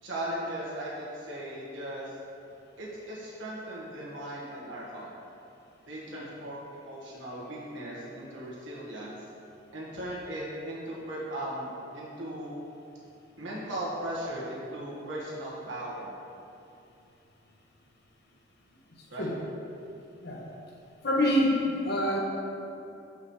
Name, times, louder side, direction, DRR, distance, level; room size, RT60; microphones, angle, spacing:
voice 1, 0.0-2.1 2.8-5.1 5.9-9.2 9.7-12.6 13.4-16.1 19.1-19.3, right 1 dB, 85° right, -6 dB, 1.8 m, -37 dB
voice 2, 21.0-22.2, left 1 dB, 60° left, -2 dB, 1.2 m, -26 dB
7.2 x 5.7 x 4.5 m, 2.7 s
head